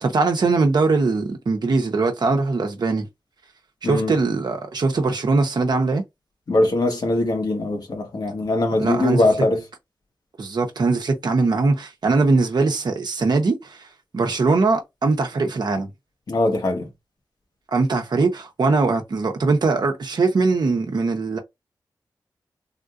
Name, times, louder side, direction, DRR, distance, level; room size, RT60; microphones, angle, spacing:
voice 1, 0.0-3.1 3.8-6.0 8.8-9.2 10.4-13.9 14.1-15.9 17.7-21.4, right 3 dB, 60° right, 0.9 m, -21 dB
voice 2, 3.8-4.2 6.5-9.6 16.3-16.9, left 2 dB, 55° left, 1.4 m, -21 dB
3.6 x 2.5 x 2.4 m
wide cardioid pair, 75°, 8 cm